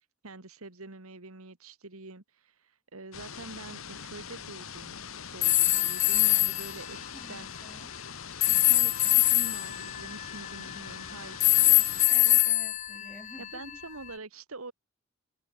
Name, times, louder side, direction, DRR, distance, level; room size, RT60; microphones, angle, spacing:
voice 1, 0.2-5.0 5.3-7.5 8.5-11.8 13.4-14.7, right 3 dB, 80° right, 2.0 m, -45 dB
sound 1, 3.1-12.1, left 7 dB, 75° left, 2.0 m, -43 dB
sound 2, 5.4-6.7 8.4-10.9 11.4-13.7, left 15 dB, 35° left, 0.5 m, -24 dB
voice 2, 7.1-7.9 8.2-8.4 12.1-13.8, equal, 5° left, 6.4 m, -50 dB
head